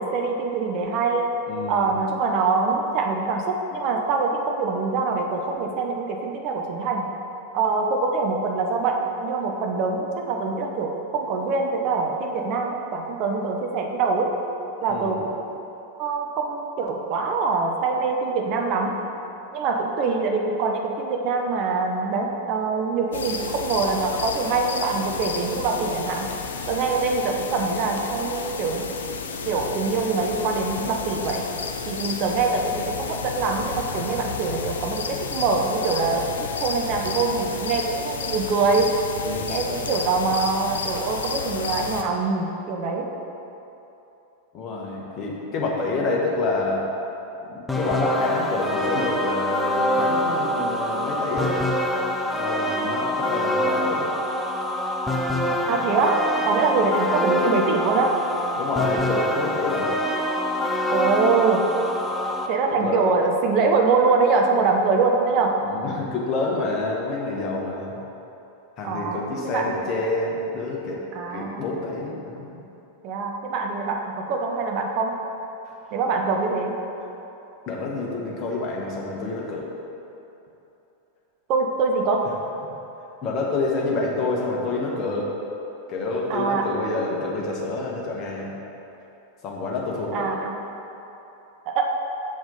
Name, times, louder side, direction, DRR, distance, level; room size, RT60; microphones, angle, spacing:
voice 1, 0.0-1.3 1.7-7.1 7.5-14.3 14.8-15.4 16.0-19.0 19.5-26.3 26.7-28.9 29.4-31.5 31.9-36.3 36.6-38.9 39.5-43.1 55.7-58.1 60.9-61.7 62.5-65.6 68.8-69.7 71.1-71.6 73.0-75.1 75.9-76.7 81.5-82.2 86.3-86.7 90.1-90.6 91.7-91.8, right 4 dB, 40° right, 2 dB, 0.7 m, -24 dB
voice 2, 1.5-1.9 14.9-15.2 39.2-39.8 44.5-46.8 47.5-51.6 52.3-54.1 55.5-55.7 58.6-59.9 62.8-63.0 65.6-68.0 68.8-71.0 71.3-72.7 75.7-75.8 77.7-79.7 82.6-82.7 83.2-85.3 85.9-88.5 89.4-90.3, left 3 dB, 35° left, -2 dB, 1.2 m, -28 dB
sound 1, 23.1-42.0, left 5 dB, 65° left, 0.4 m, -32 dB
sound 2, 47.7-62.5, left 1 dB, 10° left, 0.5 m, -25 dB
7.1 x 4.9 x 3.8 m, 3.0 s
figure-of-eight pair, 90°, 0 cm